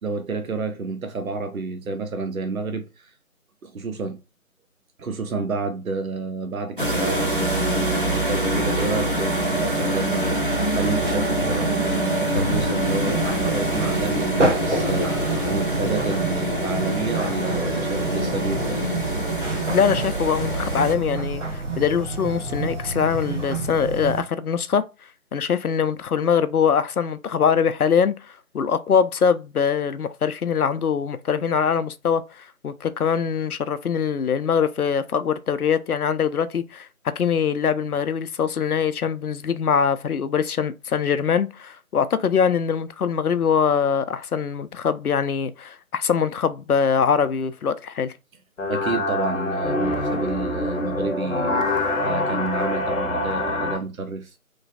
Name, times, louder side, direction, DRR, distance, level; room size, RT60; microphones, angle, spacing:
voice 1, 0.0-3.1 3.6-4.2 5.0-18.8 48.7-51.7 52.0-54.4, right 3 dB, 70° right, 0.6 m, -29 dB
sound 1, 6.8-21.0, right 1 dB, 40° left, 0.4 m, -25 dB
sound 2, 12.3-24.2, right 2 dB, 55° right, 0.9 m, -28 dB
voice 2, 19.7-24.8 25.3-36.9 37.2-48.1, left 7 dB, 90° left, 0.5 m, -23 dB
sound 3, 48.6-53.8, left 2 dB, 60° left, 0.8 m, -25 dB
3.0 x 2.2 x 2.6 m
figure-of-eight pair, 155°, 43 cm